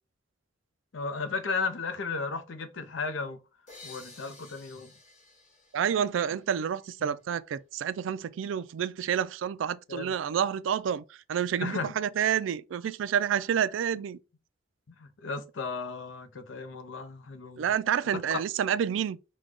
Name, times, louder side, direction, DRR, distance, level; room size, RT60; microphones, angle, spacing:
voice 1, 0.9-3.4 3.8-4.9 7.0-7.1 9.9-10.1 11.6-11.9 15.0-17.7 18.3-18.4, left 4 dB, 85° left, 0.6 m, -34 dB
sound 1, 3.7-7.2, left 3 dB, 40° left, 1.8 m, -53 dB
voice 2, 5.7-14.2 17.6-19.2, right 8 dB, 90° right, 0.3 m, -29 dB
4.9 x 2.2 x 3.6 m
head